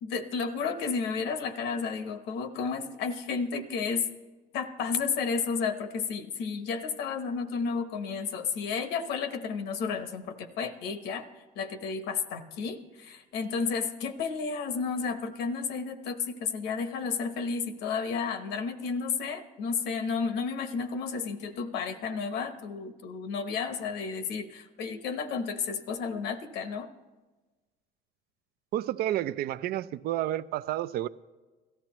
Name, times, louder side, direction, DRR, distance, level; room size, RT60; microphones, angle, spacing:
voice 1, 0.0-4.1 4.5-11.2 11.6-26.9, left 5 dB, 85° left, 0.9 m, -32 dB
voice 2, 28.7-31.1, right 13 dB, 65° right, 0.4 m, -30 dB
17.5 x 13.5 x 3.1 m
cardioid pair, 110°, 17 cm